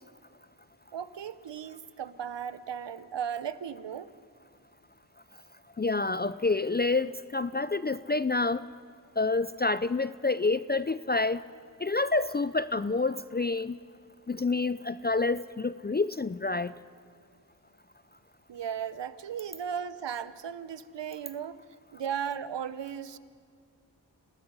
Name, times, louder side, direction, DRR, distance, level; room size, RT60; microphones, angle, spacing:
voice 1, 0.9-4.1 18.5-21.6 21.9-23.2, right 8 dB, 80° right, 15 dB, 0.9 m, -36 dB
voice 2, 5.8-8.7 9.2-11.4 11.8-13.8 14.3-16.7, left 3 dB, 25° left, 15 dB, 0.5 m, -28 dB
29.0 x 19.0 x 5.5 m, 2.3 s
cardioid pair, 45°, 42 cm